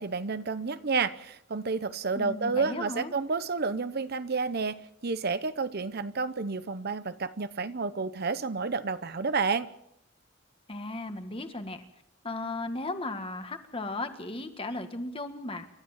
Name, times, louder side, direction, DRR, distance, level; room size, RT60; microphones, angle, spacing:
voice 1, 0.0-9.7, right 4 dB, 50° right, 13 dB, 0.8 m, -30 dB
voice 2, 2.1-3.1 10.7-11.8 12.2-15.7, left 2 dB, 25° left, 7 dB, 1.7 m, -36 dB
28.5 x 13.0 x 7.3 m, 0.77 s
head